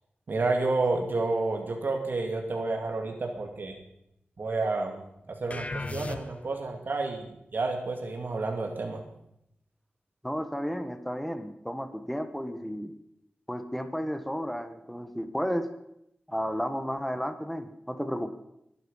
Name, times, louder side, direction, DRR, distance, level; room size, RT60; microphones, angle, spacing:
voice 1, 0.3-3.8 4.4-5.0 5.3-9.0, right 3 dB, 60° right, 3 dB, 2.4 m, -30 dB
sound 1, 5.5-6.7, left 3 dB, 35° left, 1.0 m, -36 dB
voice 2, 10.2-12.9 13.5-15.7 16.3-18.3, equal, 5° left, 8 dB, 1.2 m, -32 dB
22.0 x 11.0 x 5.6 m, 0.80 s
wide cardioid pair, 100°, 4 cm